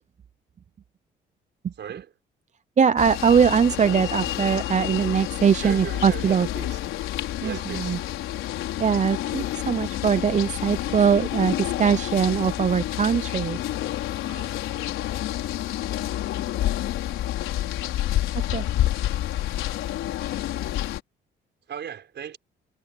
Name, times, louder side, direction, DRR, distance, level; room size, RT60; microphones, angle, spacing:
voice 1, 1.8-2.1 5.6-6.8 7.4-8.0 14.2-14.6 21.7-22.4, right 8 dB, 60° right, 5.4 m, -37 dB
voice 2, 2.8-6.5 7.4-8.0 8.8-13.6 18.5-18.7, right 7 dB, 35° right, 0.7 m, -21 dB
sound 1, 3.0-21.0, left 13 dB, 90° left, 4.7 m, -29 dB
cardioid pair, 90°, 20 cm